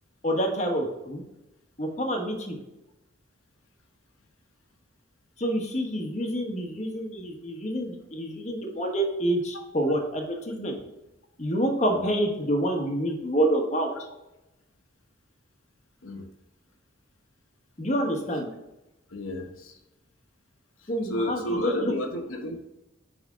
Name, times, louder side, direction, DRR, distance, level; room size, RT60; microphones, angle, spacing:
voice 1, 0.2-1.2 1.8-2.6 5.4-10.8 11.4-13.9 17.8-18.5 20.9-21.9, right 1 dB, 35° left, 2 dB, 1.2 m, -27 dB
voice 2, 19.1-19.8 20.8-22.6, left 1 dB, 85° left, 3 dB, 1.0 m, -32 dB
6.1 x 5.2 x 3.6 m, 0.94 s
head